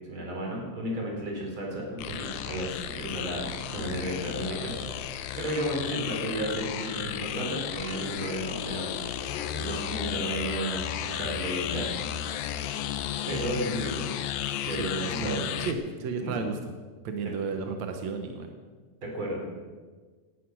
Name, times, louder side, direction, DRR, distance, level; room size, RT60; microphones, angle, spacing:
voice 1, 0.1-12.0 13.0-14.1 14.6-15.6 16.2-16.4 19.0-19.4, right 1 dB, 30° right, -1 dB, 4.5 m, -33 dB
sound 1, 2.0-15.7, left 10 dB, 75° left, 2.2 m, -34 dB
voice 2, 14.8-16.6 17.0-18.5, right 5 dB, 75° right, 5 dB, 1.6 m, -33 dB
17.5 x 13.0 x 6.2 m, 1.4 s
omnidirectional pair, 5.0 m